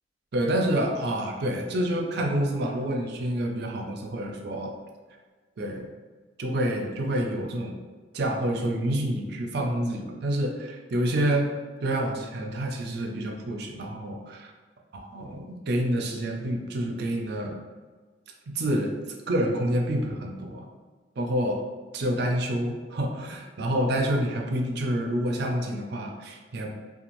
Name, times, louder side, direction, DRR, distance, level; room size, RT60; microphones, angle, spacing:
voice 1, 0.3-4.8 5.6-5.9 6.4-7.8 8.1-11.5 11.8-14.5 15.1-17.6 18.5-18.9 19.3-20.6 21.2-21.7 21.9-26.7, right 1 dB, 65° right, 2 dB, 0.4 m, -28 dB
2.5 x 2.3 x 3.0 m, 1.4 s
head